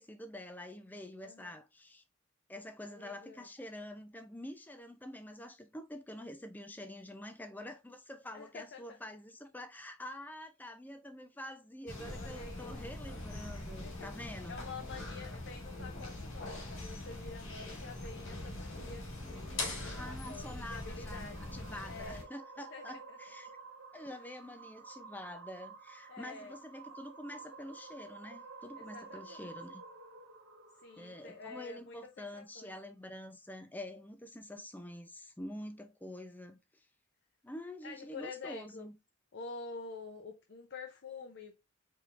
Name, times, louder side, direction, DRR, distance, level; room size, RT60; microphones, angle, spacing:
voice 1, 0.0-2.0 2.5-14.6 19.8-23.6 23.9-29.8 31.0-36.9 37.4-38.9, left 1 dB, 10° left, 0.5 m, -47 dB
voice 2, 1.2-1.5 2.8-3.5 8.3-9.0 12.2-12.8 13.8-14.1 14.5-19.0 19.4-21.4 21.9-22.3 22.6-23.2 24.1-24.2 26.1-26.5 28.8-29.5 30.8-32.7 37.8-38.9 39.3-41.6, left 4 dB, 55° left, 0.6 m, -48 dB
sound 1, 11.9-22.2, left 2 dB, 70° left, 1.7 m, -42 dB
sound 2, 19.3-31.8, right 4 dB, 65° right, 0.9 m, -52 dB
4.7 x 3.6 x 2.5 m
head